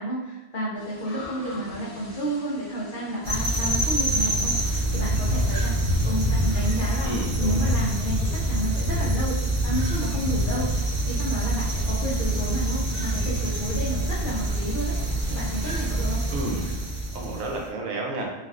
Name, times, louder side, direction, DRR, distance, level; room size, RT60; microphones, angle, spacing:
voice 1, 0.0-5.7 6.0-9.4 9.6-10.7 11.0-15.0 15.3-16.2, right 1 dB, 85° left, -6 dB, 0.4 m, -31 dB
sound 1, 0.7-6.8, left 2 dB, 45° left, 0.9 m, -42 dB
sound 2, 3.2-17.6, right 1 dB, 35° right, 0.5 m, -25 dB
voice 2, 7.0-7.7 16.3-16.7 17.1-18.3, right 2 dB, 70° right, 0 dB, 1.0 m, -31 dB
3.4 x 2.4 x 2.4 m, 1.1 s
omnidirectional pair, 1.5 m